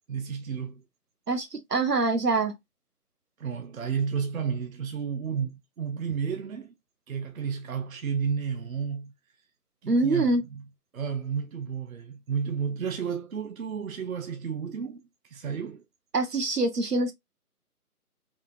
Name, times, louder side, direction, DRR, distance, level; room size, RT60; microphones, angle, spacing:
voice 1, 0.1-0.8 3.4-6.7 7.1-9.1 9.8-10.6 10.9-15.8, right 6 dB, 65° right, 0.6 m, -32 dB
voice 2, 1.3-2.5 9.9-10.4 16.1-17.1, right 3 dB, 85° right, 1.1 m, -24 dB
3.7 x 2.4 x 2.4 m
figure-of-eight pair, 150°, 46 cm